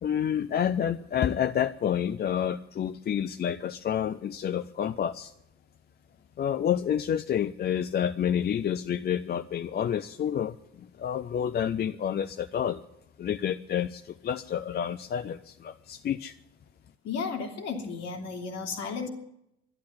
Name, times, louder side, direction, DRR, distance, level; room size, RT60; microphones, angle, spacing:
voice 1, 0.0-5.3 6.4-12.8 13.2-16.4, left 9 dB, 30° left, 12 dB, 0.6 m, -29 dB
voice 2, 17.0-19.1, left 5 dB, 55° left, 3 dB, 2.8 m, -34 dB
12.0 x 11.5 x 9.9 m, 0.81 s
figure-of-eight pair, 55°, 31 cm